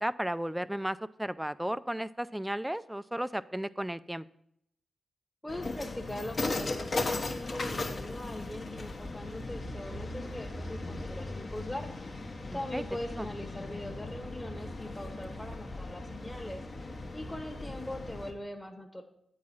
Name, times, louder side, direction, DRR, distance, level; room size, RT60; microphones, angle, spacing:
voice 1, 0.0-4.3 12.5-12.8 13.1-13.3, right 1 dB, 10° right, 16 dB, 0.4 m, -34 dB
voice 2, 5.4-11.9 12.5-16.6 17.1-19.0, left 1 dB, 25° left, 2 dB, 1.2 m, -41 dB
sound 1, 5.5-18.3, left 2 dB, 55° left, 1.1 m, -37 dB
8.4 x 4.8 x 5.5 m, 0.73 s
supercardioid pair, 45°, 0 cm